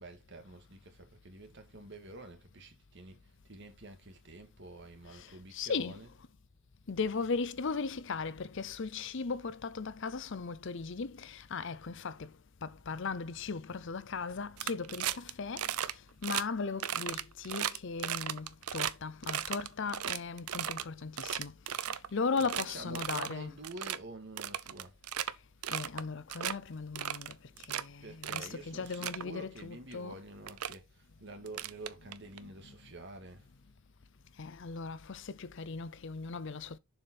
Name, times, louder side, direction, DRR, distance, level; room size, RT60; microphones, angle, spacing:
voice 1, 0.0-3.2 3.5-6.2 22.1-25.0 27.6-27.7 28.0-33.5, right 2 dB, 50° right, 2.0 m, -48 dB
voice 2, 5.1-6.0 6.9-12.3 12.6-15.7 16.2-21.5 21.8-23.5 25.7-27.4 27.7-30.2 32.4-32.5 34.4-36.8, left 4 dB, 55° left, 0.6 m, -37 dB
sound 1, 14.6-15.3 15.6-15.9 16.2-16.4 16.8-18.9 19.2-20.8 21.2-22.1 22.4-22.6 22.9-23.3 23.6-24.0 24.4-25.3 25.6-26.0 26.3-26.5 27.0-27.8 28.2-28.5 28.9-29.2 30.0-30.1 30.5-30.7 31.5-32.4, right 10 dB, 85° right, 0.6 m, -35 dB
7.1 x 5.3 x 4.2 m
head